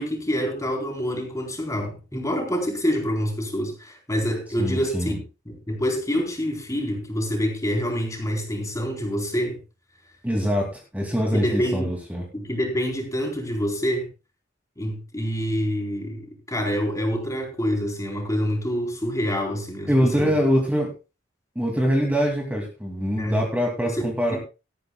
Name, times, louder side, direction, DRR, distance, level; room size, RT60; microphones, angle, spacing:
voice 1, 0.0-5.2 5.5-9.6 11.3-11.9 12.3-14.1 14.8-20.4 23.2-23.4 23.8-24.4, equal, 15° left, 2 dB, 3.9 m, -26 dB
voice 2, 4.6-5.1 10.2-12.2 19.9-20.9 21.6-24.4, equal, 10° right, -1 dB, 2.4 m, -23 dB
18.0 x 13.5 x 2.3 m, 0.30 s
head